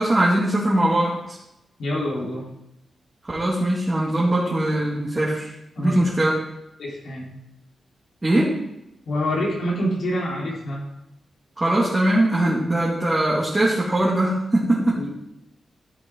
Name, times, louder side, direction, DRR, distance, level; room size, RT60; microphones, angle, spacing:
voice 1, 0.0-1.4 3.3-6.3 8.2-8.6 11.6-15.0, right 1 dB, 20° right, -6 dB, 2.1 m, -21 dB
voice 2, 1.8-2.5 4.2-4.3 5.8-6.0 6.8-7.3 9.1-10.8 15.0-15.2, equal, 80° left, -5 dB, 4.0 m, -26 dB
13.0 x 7.9 x 3.8 m, 0.89 s
wide cardioid pair, 140°, 0 cm